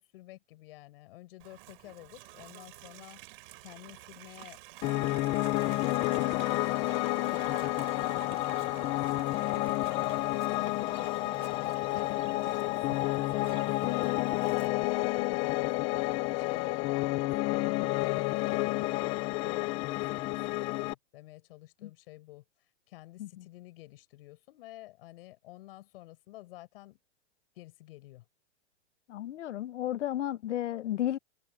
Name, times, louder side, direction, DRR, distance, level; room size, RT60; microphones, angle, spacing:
voice 1, 0.0-3.2 3.6-4.6 5.0-6.9 7.2-11.0 11.6-16.0 16.3-22.4 22.9-27.0 27.5-28.2, left 18 dB, 55° left, 7.8 m, -50 dB
Livestock farm animals working animals, 1.4-14.7, right 20 dB, 50° right, 6.7 m, -50 dB
Piano, 4.8-20.9, left 19 dB, 15° left, 0.4 m, -30 dB
voice 2, 29.1-31.2, left 12 dB, 85° left, 1.0 m, -33 dB
supercardioid pair, 155°, 35 cm